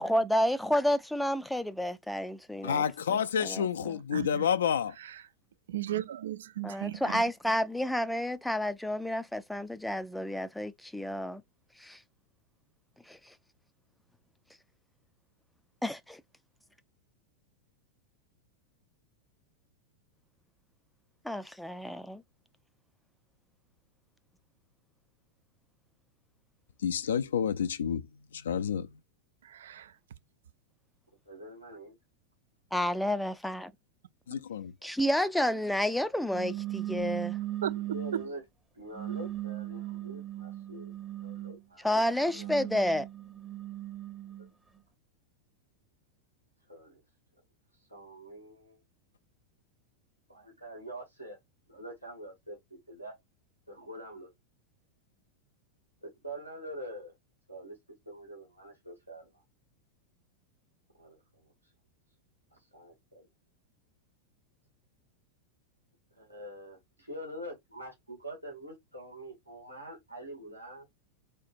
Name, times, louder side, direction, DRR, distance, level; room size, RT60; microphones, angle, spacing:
voice 1, 0.0-2.8 3.1-4.0 6.6-11.4 11.8-12.0 13.1-13.3 15.8-16.2 21.2-22.2 32.7-33.7 34.8-37.4 41.8-43.1, equal, 5° left, 0.4 m, -30 dB
voice 2, 2.6-5.0 26.8-28.1 28.3-28.9 34.3-34.7, left 7 dB, 65° left, 0.4 m, -29 dB
voice 3, 4.1-4.4 5.7-7.2 29.4-29.9 37.6-38.2, right 11 dB, 60° right, 0.4 m, -36 dB
voice 4, 31.3-32.0 37.8-38.4 38.7-40.9 41.2-42.8 44.2-44.5 46.7-47.0 47.9-48.8 50.3-51.4 51.7-53.2 53.7-54.3 56.0-57.2 57.5-57.8 58.0-59.4 60.9-61.7 62.7-63.3 66.2-70.9, right 1 dB, 85° right, 2.1 m, -45 dB
sound 1, 36.3-38.3 38.9-41.6 42.2-44.5, right 14 dB, 15° right, 0.8 m, -38 dB
4.4 x 4.1 x 2.5 m
figure-of-eight pair, 90°, 0 cm